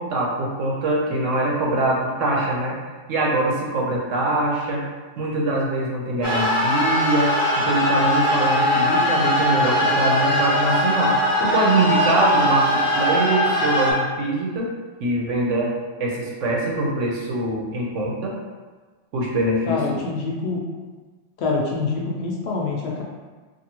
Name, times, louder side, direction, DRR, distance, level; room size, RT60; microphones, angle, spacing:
voice 1, 0.0-2.8 3.1-4.8 5.2-14.7 15.0-15.7 16.0-18.4 19.1-20.0, right 2 dB, 85° right, -2 dB, 1.0 m, -23 dB
sound 1, 6.2-13.9, left 1 dB, 35° left, 0.6 m, -20 dB
voice 2, 19.7-20.6 21.4-23.0, left 3 dB, 65° left, -2 dB, 0.8 m, -25 dB
2.7 x 2.5 x 2.8 m, 1.3 s
omnidirectional pair, 1.2 m